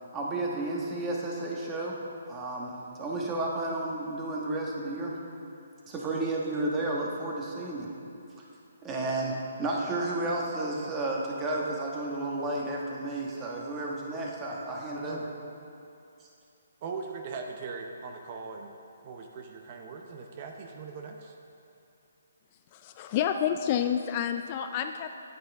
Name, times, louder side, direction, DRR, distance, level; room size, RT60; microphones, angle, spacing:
voice 1, 0.0-1.9 2.2-5.2 5.9-7.9 8.8-15.2 16.2-16.3, right 2 dB, 15° right, -2 dB, 1.2 m, -32 dB
voice 2, 16.8-18.8 19.0-21.3, right 4 dB, 40° right, 3 dB, 0.7 m, -40 dB
voice 3, 22.7-25.1, left 9 dB, 35° left, 8 dB, 0.3 m, -29 dB
9.3 x 8.9 x 3.5 m, 2.7 s
hypercardioid pair, 145°, 0 cm